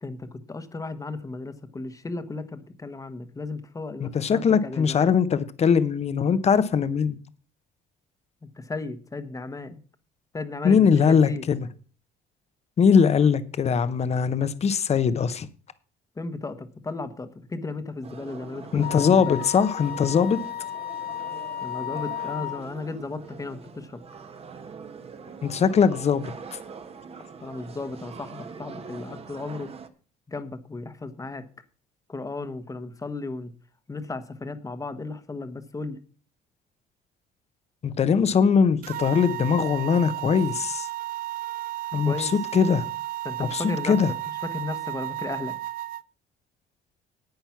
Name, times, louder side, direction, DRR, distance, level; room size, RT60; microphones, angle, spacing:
voice 1, 0.0-5.1 8.4-9.8 10.3-11.4 16.2-19.4 21.6-24.0 27.4-29.7 30.3-31.4 32.1-33.5 33.9-36.0 42.0-42.3 43.2-43.9 44.4-45.5, left 3 dB, 20° left, 1.3 m, -35 dB
voice 2, 4.0-7.2 10.6-11.6 12.8-15.5 18.7-20.4 25.4-26.6 37.8-40.9 41.9-42.8 43.4-44.1, left 6 dB, 40° left, 1.0 m, -21 dB
sound 1, 18.0-29.9, right 5 dB, 35° right, 1.3 m, -43 dB
Wind instrument woodwind instrument, 18.8-22.7, left 11 dB, 60° left, 2.4 m, -33 dB
sound 2, 38.8-46.0, right 15 dB, 60° right, 0.5 m, -33 dB
10.5 x 8.8 x 5.9 m
cardioid pair, 110°, 17 cm